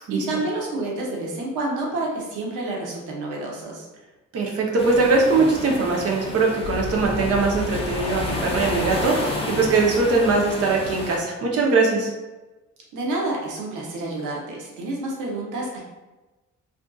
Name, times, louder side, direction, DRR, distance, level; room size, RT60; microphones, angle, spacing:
voice 1, 0.1-3.9 12.9-15.8, right 2 dB, 90° right, -2 dB, 0.7 m, -29 dB
voice 2, 4.3-12.1, right 3 dB, 50° right, 0 dB, 0.7 m, -21 dB
sound 1, 4.8-11.2, left 2 dB, 20° left, 0.5 m, -31 dB
sound 2, 4.8-10.2, left 3 dB, 70° right, 1.2 m, -36 dB
2.5 x 2.4 x 2.2 m, 1.1 s
cardioid pair, 90°, 30 cm